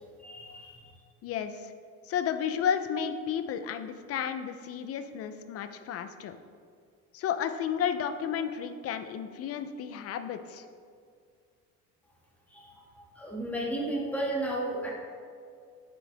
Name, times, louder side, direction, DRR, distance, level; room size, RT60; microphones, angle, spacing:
voice 1, 0.2-0.9 12.5-14.9, right 1 dB, 5° left, -5 dB, 2.0 m, -34 dB
voice 2, 1.2-1.7 2.1-6.4 7.1-10.6, left 8 dB, 50° left, 9 dB, 0.7 m, -32 dB
9.9 x 7.8 x 3.5 m, 2.2 s
cardioid pair, 140°, 30 cm